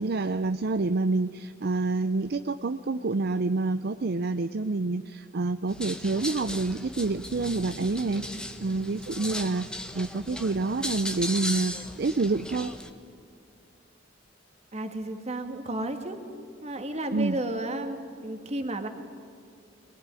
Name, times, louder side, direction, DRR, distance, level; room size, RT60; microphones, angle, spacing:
voice 1, 0.0-8.2 8.6-12.7 17.1-17.4, right 3 dB, 55° right, 10 dB, 0.6 m, -28 dB
sound 1, 5.7-12.9, left 1 dB, 5° left, 1.3 m, -37 dB
voice 2, 14.7-16.2 16.6-18.9, right 1 dB, 35° right, 6 dB, 2.0 m, -33 dB
22.0 x 19.0 x 9.8 m, 2.4 s
head